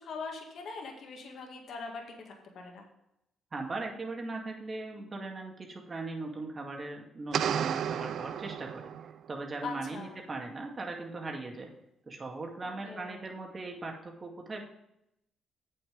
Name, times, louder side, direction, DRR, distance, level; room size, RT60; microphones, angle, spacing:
voice 1, 0.0-2.9 9.6-10.2 12.6-13.3, left 4 dB, 65° left, 1 dB, 1.9 m, -42 dB
voice 2, 3.5-8.9 9.3-11.7 12.1-14.6, right 3 dB, 35° right, 1 dB, 2.2 m, -39 dB
sound 1, 7.3-9.3, right 9 dB, 70° right, 0.4 m, -32 dB
8.5 x 6.8 x 5.2 m, 0.80 s
cardioid pair, 90°, 0 cm